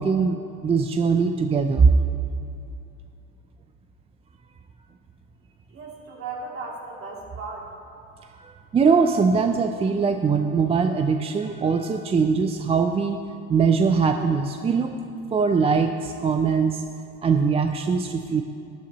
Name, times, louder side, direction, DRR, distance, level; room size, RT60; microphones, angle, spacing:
voice 1, 0.0-1.9 8.3-13.2 13.5-15.0 15.3-16.8 17.2-18.4, right 5 dB, 20° right, 6 dB, 0.4 m, -21 dB
voice 2, 5.7-7.7, right 3 dB, 40° right, -3 dB, 2.8 m, -36 dB
12.0 x 12.0 x 3.0 m, 2.6 s
supercardioid pair, 105°, 35 cm